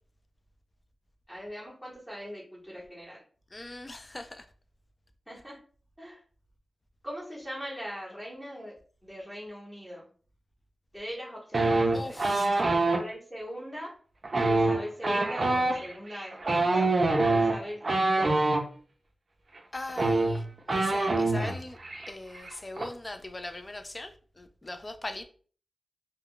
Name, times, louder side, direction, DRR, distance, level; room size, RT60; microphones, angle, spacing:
voice 1, 1.3-3.2 5.3-5.6 6.0-6.2 7.0-8.7 9.0-10.0 10.9-12.2 12.7-13.9 14.5-17.8 18.1-18.4, equal, 5° left, 0.9 m, -40 dB
voice 2, 3.5-4.5 11.9-12.6 19.7-21.8 22.1-25.2, left 2 dB, 25° left, 0.3 m, -40 dB
sound 1, 11.5-13.0 14.2-18.6 19.6-19.7 19.9-21.5 21.8-22.1 22.3-22.8, right 2 dB, 45° right, 0.4 m, -25 dB
2.2 x 2.1 x 3.6 m
wide cardioid pair, 125°, 0 cm